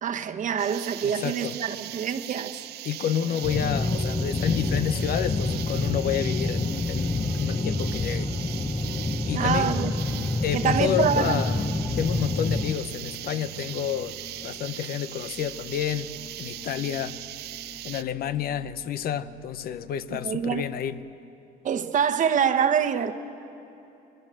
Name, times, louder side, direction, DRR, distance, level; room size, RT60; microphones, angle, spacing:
voice 1, 0.0-2.6 9.3-10.3 10.5-11.4 20.2-20.7 21.6-23.1, right 7 dB, 50° right, 1.2 m, -25 dB
sound 1, 0.6-18.0, right 15 dB, 75° right, 0.6 m, -39 dB
voice 2, 1.0-1.6 2.8-8.3 9.2-9.7 10.4-11.6 11.9-14.2 14.4-17.2 17.8-21.0, left 9 dB, 60° left, 0.9 m, -29 dB
sound 2, 3.0-21.1, left 4 dB, 35° left, 1.5 m, -44 dB
sound 3, 3.4-12.8, left 2 dB, 15° left, 0.9 m, -27 dB
26.5 x 21.0 x 7.6 m
cardioid pair, 110°, 17 cm